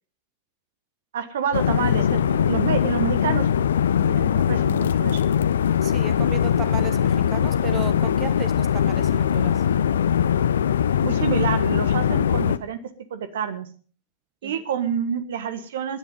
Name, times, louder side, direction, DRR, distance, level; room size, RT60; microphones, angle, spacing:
voice 1, 1.1-3.5 4.1-5.3 11.0-12.8 13.1-13.7 14.4-16.0, right 8 dB, 60° right, 13 dB, 1.4 m, -28 dB
sound 1, 1.5-12.6, left 8 dB, 65° left, 0.6 m, -21 dB
voice 2, 5.8-9.6 14.4-14.6, right 9 dB, 30° right, 13 dB, 1.4 m, -35 dB
17.0 x 10.5 x 5.5 m, 0.42 s
figure-of-eight pair, 90°, 0 cm